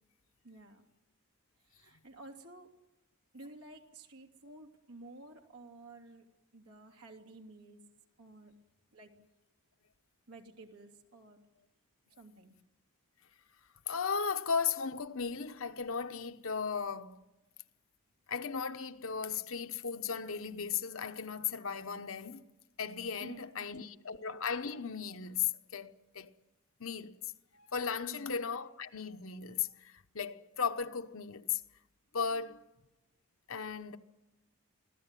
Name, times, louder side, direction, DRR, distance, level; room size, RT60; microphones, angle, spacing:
voice 1, 0.4-0.9 1.6-2.7 3.3-6.2 6.5-7.8 8.2-8.5 8.9-9.1 10.3-11.4 12.1-12.5 23.2-23.6 28.1-28.3, right 2 dB, 90° right, 3.1 m, -52 dB
voice 2, 13.9-17.2 18.3-22.5 22.8-26.3 26.8-31.6 32.1-32.7 33.5-34.0, left 6 dB, 65° left, 1.0 m, -36 dB
25.0 x 16.5 x 9.2 m
head